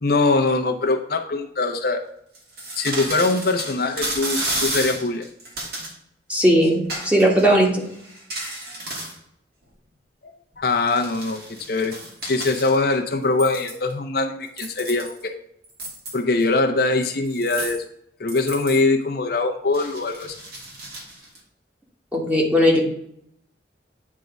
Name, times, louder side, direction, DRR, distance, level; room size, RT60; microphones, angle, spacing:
voice 1, 0.0-2.0 2.8-5.3 10.2-11.4 11.7-11.9 12.3-15.3 16.1-17.8 18.2-20.3, left 3 dB, 60° left, 3 dB, 0.8 m, -22 dB
sound 1, 2.3-5.9 6.8-7.4 7.8-9.2 10.5-13.0 13.4-13.9 14.4-15.2 15.6-16.4 17.3-17.8 18.3-18.8 19.7-21.4, right 1 dB, 60° right, 2.6 m, -32 dB
voice 2, 6.3-7.7 22.1-22.8, equal, 5° right, -2 dB, 1.7 m, -17 dB
9.3 x 3.7 x 5.1 m, 0.72 s
head